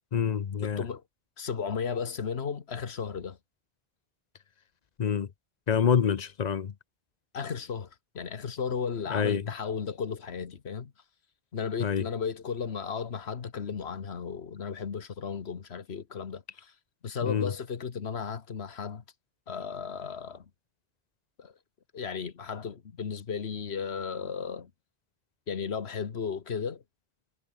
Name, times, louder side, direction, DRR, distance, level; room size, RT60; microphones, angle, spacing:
voice 1, 0.1-0.8 5.0-5.3 5.7-6.7 9.1-9.5 11.8-12.1 17.2-17.5, left 7 dB, 45° left, 0.7 m, -27 dB
voice 2, 0.6-1.0 1.4-3.4 7.3-7.9 8.1-10.9 11.5-16.7 17.0-19.0 19.5-20.5 21.4-21.5 21.9-24.7 25.5-26.8, left 6 dB, 85° left, 1.6 m, -35 dB
omnidirectional pair, 1.1 m